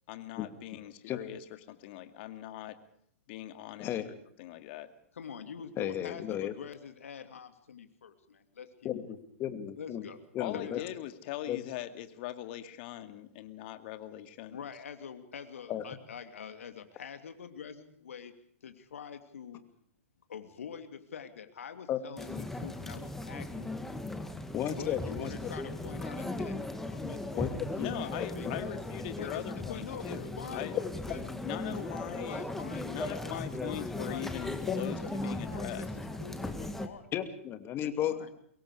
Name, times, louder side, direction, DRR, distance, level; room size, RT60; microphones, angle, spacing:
voice 1, 0.1-1.4 1.7-2.8 3.3-4.1 4.4-4.9 10.4-14.6 27.8-30.8 31.4-32.4 32.8-35.9, left 14 dB, 50° left, 9 dB, 2.4 m, -41 dB
voice 2, 5.1-8.9 9.8-10.2 10.5-10.9 14.5-18.3 18.6-19.6 20.3-23.7 24.7-26.6 26.9-28.7 29.2-31.2 31.6-32.9 33.2-34.6 34.9-37.1 37.8-38.3, left 7 dB, 75° left, 8 dB, 2.8 m, -45 dB
voice 3, 5.8-6.5 8.8-10.1 10.3-10.8 11.5-11.6 15.7-15.8 21.9-22.0 24.5-25.5 27.4-27.5 27.8-27.9 34.7-34.8 37.1-38.3, left 11 dB, 30° left, 9 dB, 2.7 m, -34 dB
sound 1, 22.2-36.9, left 1 dB, 5° left, 2.1 m, -38 dB
24.0 x 22.5 x 4.9 m, 0.68 s
hypercardioid pair, 115°, 7 cm